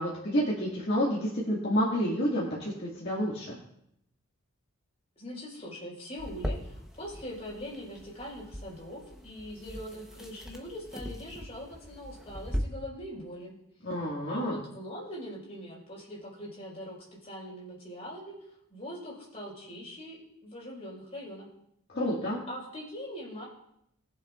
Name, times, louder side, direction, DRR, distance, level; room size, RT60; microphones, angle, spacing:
voice 1, 0.0-3.6 13.8-14.6 21.9-22.4, equal, 50° left, -6 dB, 2.0 m, -29 dB
voice 2, 5.2-13.5 14.3-16.9 17.2-18.3 18.7-21.5 22.5-23.5, equal, 30° left, -4 dB, 4.5 m, -42 dB
sound 1, 6.2-12.6, equal, ahead, 0.9 m, -40 dB
21.0 x 7.2 x 2.5 m, 0.76 s
head